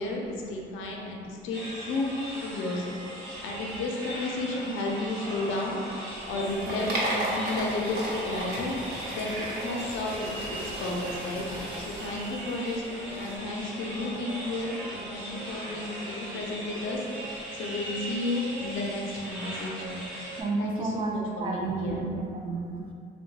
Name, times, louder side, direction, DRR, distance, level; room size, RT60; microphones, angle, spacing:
voice 1, 0.0-2.1 2.4-8.8 9.1-11.5 11.9-20.0 20.6-22.0, left 2 dB, 80° left, -1 dB, 0.5 m, -33 dB
sound 1, 1.5-20.4, right 1 dB, 90° right, 0.7 m, -39 dB
sound 2, 6.2-13.3, right 1 dB, 55° right, 0.7 m, -35 dB
voice 2, 20.3-22.9, right 3 dB, 25° right, 0 dB, 0.4 m, -32 dB
2.9 x 2.1 x 2.7 m, 2.2 s
cardioid pair, 90°, 20 cm